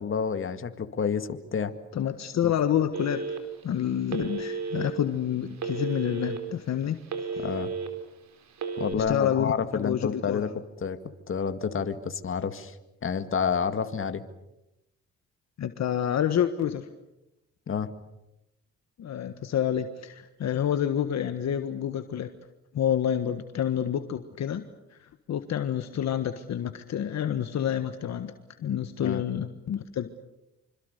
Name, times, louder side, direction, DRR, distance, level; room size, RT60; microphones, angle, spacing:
voice 1, 0.0-1.7 2.4-2.5 7.4-7.7 8.8-10.5 10.8-11.0 11.3-12.8 13.0-14.2 17.7-17.9 29.0-29.2, left 6 dB, 45° left, 9 dB, 2.1 m, -29 dB
voice 2, 1.9-3.4 3.6-7.0 9.0-10.4 15.6-16.9 19.0-22.3 22.7-24.6 24.9-28.3 28.6-30.1, left 9 dB, 60° left, 9 dB, 1.5 m, -28 dB
Telephone, 2.9-3.6 4.1-4.9 5.6-6.4 6.8-7.9 8.5-8.9, right 4 dB, 65° right, 4.3 m, -33 dB
26.5 x 26.0 x 6.8 m, 0.90 s
cardioid pair, 90°, 30 cm